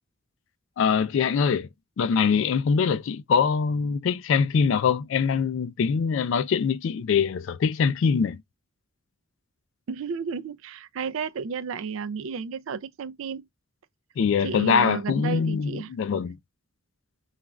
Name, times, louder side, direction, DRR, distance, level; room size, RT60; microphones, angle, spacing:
voice 1, 0.8-1.7 2.0-8.4 14.2-16.4, left 6 dB, 65° left, 0.3 m, -23 dB
voice 2, 9.9-13.5 14.4-15.9, right 5 dB, 70° right, 0.4 m, -32 dB
2.4 x 2.3 x 3.0 m
head